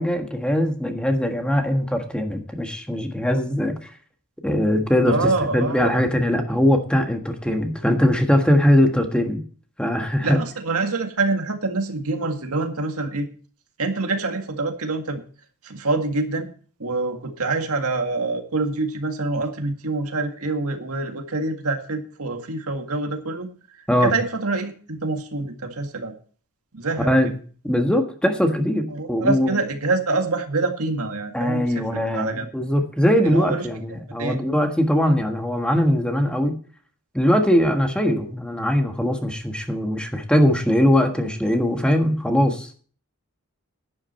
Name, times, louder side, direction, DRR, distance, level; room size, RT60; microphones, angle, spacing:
voice 1, 0.0-3.9 4.4-9.4 9.8-10.4 23.9-24.1 27.0-27.3 27.6-29.6 31.3-36.6 37.1-42.7, equal, 5° left, 4 dB, 1.5 m, -21 dB
voice 2, 5.1-6.0 10.2-13.3 13.8-15.2 15.6-16.5 16.8-23.5 24.0-26.1 26.7-27.3 28.9-32.5 33.2-33.6 34.2-34.5, right 3 dB, 80° right, 5 dB, 1.9 m, -26 dB
11.0 x 11.0 x 4.3 m, 0.42 s
head